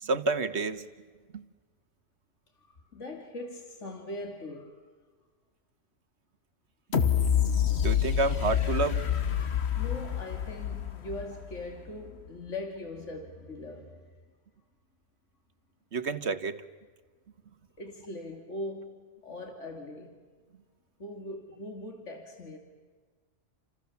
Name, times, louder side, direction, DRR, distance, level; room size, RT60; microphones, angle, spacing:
voice 1, 0.0-0.8 1.3-1.4 7.8-9.0 15.9-16.6, right 3 dB, 65° right, 1.6 m, -29 dB
voice 2, 2.6-4.9 9.8-14.1 17.8-20.2 21.0-22.6, left 2 dB, 80° left, 2.9 m, -41 dB
sound 1, 6.9-11.8 12.3-12.4, left 8 dB, 60° left, 1.6 m, -27 dB
29.5 x 27.5 x 7.2 m
omnidirectional pair, 1.2 m